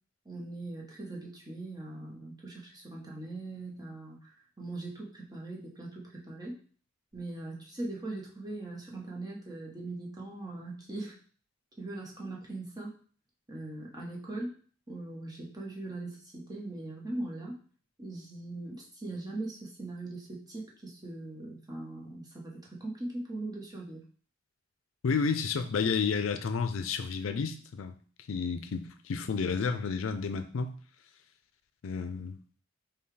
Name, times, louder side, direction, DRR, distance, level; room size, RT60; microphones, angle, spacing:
voice 1, 0.2-6.6 7.1-11.1 11.8-13.0 13.5-14.6 14.9-17.6 18.0-24.0, right 2 dB, 20° right, 1.0 m, -40 dB
voice 2, 25.0-27.9 28.3-30.7 31.8-32.4, left 5 dB, 80° left, 0.4 m, -31 dB
5.5 x 2.3 x 3.2 m
head